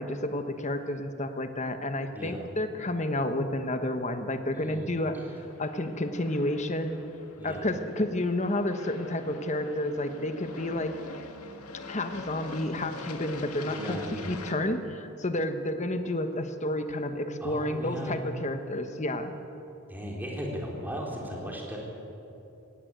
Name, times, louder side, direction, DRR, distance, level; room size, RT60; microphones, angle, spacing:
voice 1, 0.0-5.2 5.6-7.0 7.4-11.0 11.9-19.3, left 1 dB, 30° left, 8 dB, 1.2 m, -30 dB
voice 2, 2.1-2.5 4.5-5.3 7.4-7.7 13.7-14.4 17.4-18.2 19.9-21.8, equal, 10° right, -2 dB, 3.6 m, -37 dB
Aircraft, 5.3-14.5, left 3 dB, 80° left, 1.8 m, -44 dB
17.5 x 16.5 x 9.6 m, 2.9 s
head